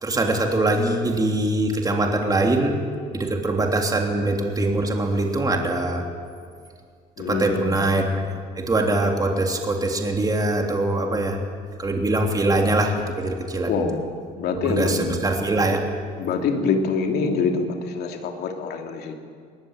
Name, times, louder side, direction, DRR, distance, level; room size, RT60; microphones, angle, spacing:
voice 1, 0.0-2.8 3.1-6.0 7.3-11.4 11.8-13.8 14.6-15.8, right 2 dB, 20° right, 2 dB, 3.3 m, -23 dB
voice 2, 7.2-7.7 13.7-14.0 14.4-15.1 16.2-19.1, left 5 dB, 70° left, 3 dB, 3.0 m, -25 dB
22.0 x 19.5 x 9.0 m, 2.1 s
cardioid pair, 110°, 17 cm